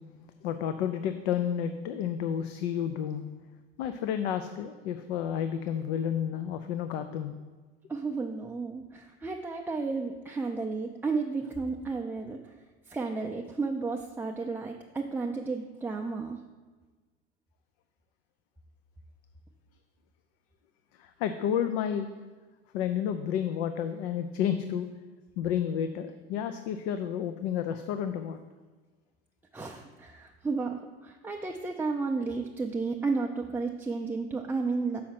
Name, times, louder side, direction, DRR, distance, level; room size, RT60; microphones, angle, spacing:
voice 1, 0.4-3.2 3.8-7.3 21.0-22.1 22.7-24.9 25.4-28.4, left 9 dB, 80° left, 9 dB, 0.5 m, -31 dB
voice 2, 7.9-12.5 12.9-16.4 29.5-35.0, right 4 dB, 5° right, 1 dB, 0.3 m, -32 dB
6.3 x 5.7 x 5.8 m, 1.4 s
supercardioid pair, 105°, 32 cm